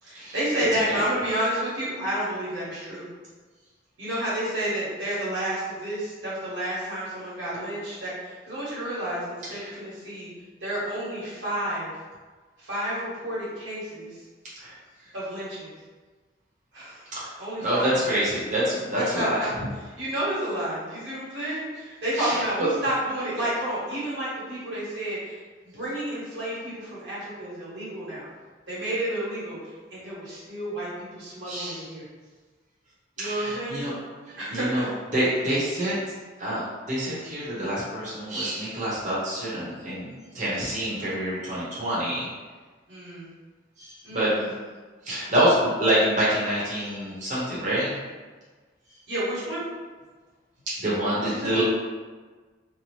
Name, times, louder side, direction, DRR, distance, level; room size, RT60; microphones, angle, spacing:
voice 1, 0.0-3.1 4.0-10.3 10.6-11.9 12.6-14.2 15.1-15.7 16.7-17.0 17.4-18.0 19.1-19.5 19.8-25.4 25.6-28.3 28.7-29.6 29.9-32.0 33.2-33.8 34.4-34.9 42.9-43.3 44.0-44.5 49.1-49.6 51.2-51.5, right 1 dB, 90° right, -8 dB, 1.2 m, -30 dB
voice 2, 17.6-19.4 21.4-21.5 22.2-22.7 31.4-31.9 33.2-33.9 34.3-34.9 35.1-35.9 36.4-42.3 43.8-44.3 45.0-48.0 50.8-51.6, right 1 dB, 45° right, -9 dB, 0.8 m, -26 dB
2.7 x 2.0 x 3.0 m, 1.4 s
head